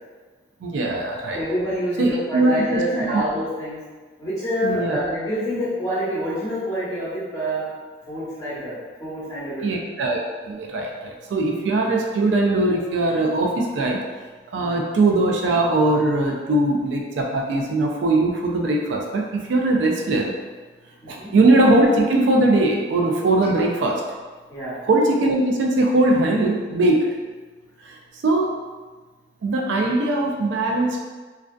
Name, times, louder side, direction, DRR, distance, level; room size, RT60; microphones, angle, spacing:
voice 1, 0.6-1.4 2.0-3.2 4.6-5.0 9.6-10.2 10.5-14.0 14.5-20.3 21.1-24.0 24.8-27.1 27.8-28.6 29.4-31.0, right 2 dB, 80° right, 0 dB, 0.3 m, -20 dB
voice 2, 1.3-3.8 4.2-7.7 8.1-9.8 14.5-14.6 21.0-21.3 24.5-24.8, equal, 20° left, -11 dB, 0.9 m, -27 dB
2.4 x 2.2 x 2.2 m, 1.4 s
head